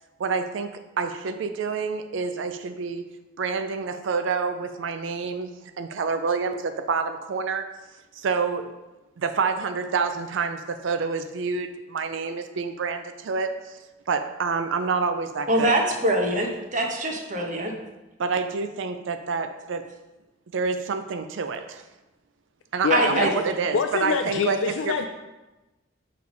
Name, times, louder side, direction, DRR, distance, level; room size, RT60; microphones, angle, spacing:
voice 1, 0.2-3.1 3.4-5.5 5.8-7.6 8.1-8.7 9.2-13.8 14.1-15.7 18.2-19.9 20.5-21.8 22.7-25.0, right 5 dB, 70° right, 8 dB, 0.4 m, -28 dB
voice 2, 15.5-17.7 22.9-23.3, right 1 dB, 40° right, 1 dB, 1.0 m, -23 dB
voice 3, 22.8-23.3 23.7-25.1, left 6 dB, 80° left, 5 dB, 0.4 m, -25 dB
6.8 x 3.3 x 5.2 m, 1.1 s
head